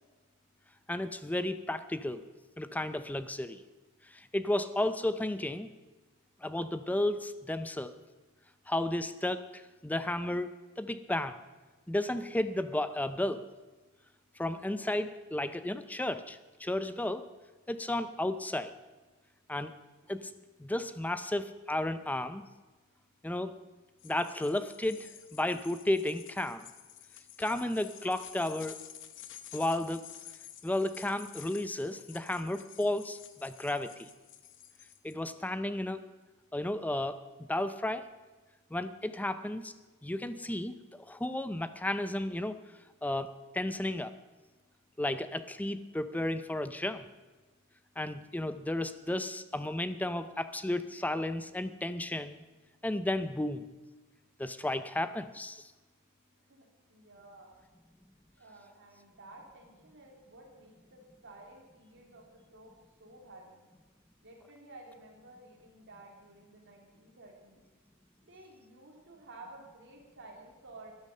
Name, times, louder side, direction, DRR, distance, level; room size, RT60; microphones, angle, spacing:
voice 1, 0.9-2.2 2.6-3.6 4.1-5.7 6.4-7.9 8.7-10.5 10.8-11.4 11.9-13.5 14.4-17.2 17.7-18.7 19.5-19.7 20.1-20.2 20.6-22.4 23.2-23.5 24.0-26.7 27.4-28.8 29.5-30.1 30.6-34.1 35.0-36.0 36.5-37.2 37.5-38.1 38.7-39.7 40.0-42.6 43.0-44.1 45.0-47.1 48.0-52.4 52.8-53.7 54.4-55.7, left 1 dB, 5° left, 12 dB, 0.5 m, -33 dB
sound 1, 24.0-35.1, left 11 dB, 60° left, 0.9 m, -51 dB
voice 2, 56.5-57.6 58.4-62.7 63.0-63.6 64.2-67.6 68.2-71.0, right 2 dB, 55° right, 0 dB, 3.2 m, -53 dB
13.0 x 10.5 x 6.6 m, 1.2 s
head